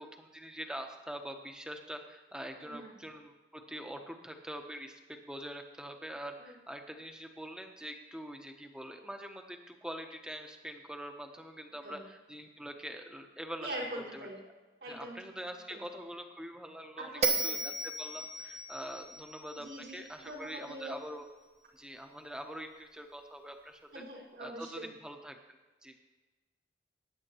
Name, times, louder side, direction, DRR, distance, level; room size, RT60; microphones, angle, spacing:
voice 1, 0.0-13.7 13.9-14.3 14.8-19.7 19.9-21.3 21.7-24.0 24.4-25.9, equal, 5° right, 4 dB, 1.0 m, -44 dB
voice 2, 2.5-2.9 6.4-6.5 11.8-12.0 13.6-14.4 14.8-15.2 15.7-15.8 17.0-17.6 19.6-20.0 20.2-20.9 23.9-24.9, right 1 dB, 80° right, -6 dB, 4.6 m, -43 dB
Bell, 17.2-20.5, right 3 dB, 40° right, 1.1 m, -35 dB
20.5 x 9.8 x 3.0 m, 1.3 s
head